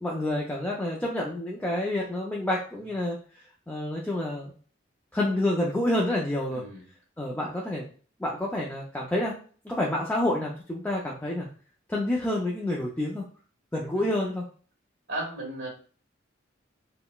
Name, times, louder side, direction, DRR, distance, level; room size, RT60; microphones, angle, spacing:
voice 1, 0.0-3.2 3.7-4.5 5.1-6.6 7.2-7.8 8.2-9.3 9.6-11.5 11.9-13.2 13.7-14.4, left 1 dB, 10° left, -4 dB, 0.3 m, -28 dB
voice 2, 6.5-6.8 13.9-14.0 15.1-15.7, right 2 dB, 60° right, -1 dB, 1.3 m, -35 dB
3.8 x 2.0 x 2.2 m, 0.42 s
head